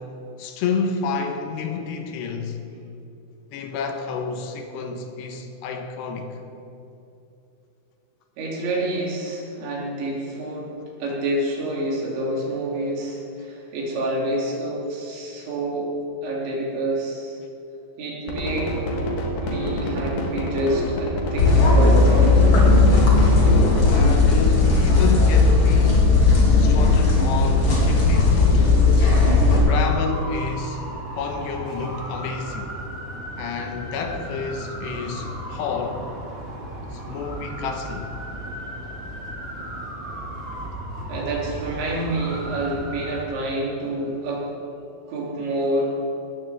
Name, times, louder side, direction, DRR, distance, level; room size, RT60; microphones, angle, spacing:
voice 1, 0.0-2.6 3.5-6.4 23.5-26.1 26.6-28.7 29.5-30.8 31.1-32.7 33.4-36.0 36.9-38.1, left 5 dB, 75° left, 3.1 m, -29 dB
voice 2, 8.4-10.7 11.0-15.9 16.2-17.4 18.0-18.7 19.4-22.3 41.1-44.6 45.1-46.0, right 1 dB, 90° right, 5.2 m, -28 dB
sound 1, 18.3-23.9, left 1 dB, 55° left, 3.0 m, -27 dB
sound 2, 21.4-29.6, left 3 dB, 35° left, 3.0 m, -16 dB
sound 3, 29.7-43.2, right 1 dB, 35° right, 1.3 m, -35 dB
19.0 x 14.5 x 3.5 m
omnidirectional pair, 5.1 m